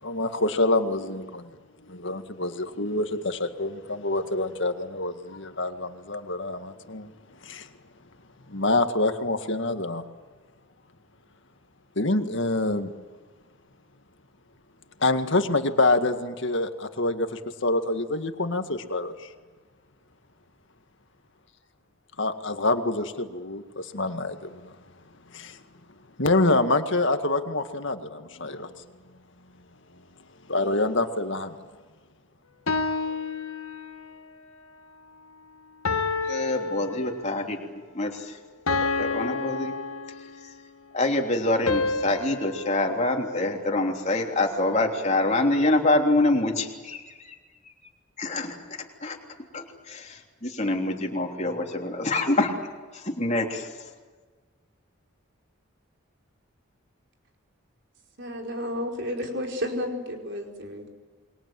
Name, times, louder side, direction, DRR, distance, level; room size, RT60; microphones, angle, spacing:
voice 1, 0.0-1.6 1.9-7.1 7.4-7.7 8.5-10.0 12.0-12.9 15.0-19.3 22.2-24.7 25.3-25.6 26.2-28.8 30.5-31.6, left 2 dB, 60° left, 8 dB, 2.0 m, -26 dB
sound 1, 32.7-34.2 35.9-37.5 38.7-40.6 41.7-44.0, left 3 dB, 80° left, 1.9 m, -30 dB
voice 2, 36.2-38.4 38.7-39.7 40.9-47.4 48.2-49.2 49.5-52.5 52.9-53.7, left 2 dB, 30° left, 2 dB, 3.4 m, -26 dB
voice 3, 58.2-60.9, left 1 dB, 55° right, 2 dB, 4.9 m, -32 dB
28.5 x 22.5 x 7.8 m, 1.4 s
head